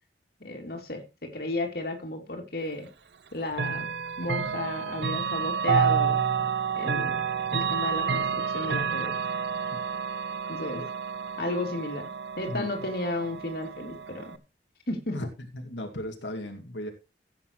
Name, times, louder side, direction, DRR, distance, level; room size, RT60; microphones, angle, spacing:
voice 1, 0.4-2.9 3.3-3.9 4.2-6.5 6.7-7.2 7.5-9.1 10.5-10.8 11.4-12.1 12.4-14.4 14.9-15.1, left 2 dB, 55° left, 3 dB, 2.9 m, -33 dB
Chime / Clock, 3.5-14.4, right 6 dB, 70° right, 0.9 m, -29 dB
voice 2, 12.5-12.9 15.1-15.3 15.5-16.9, left 1 dB, 90° left, 3 dB, 2.2 m, -36 dB
16.0 x 8.7 x 3.1 m, 0.28 s
head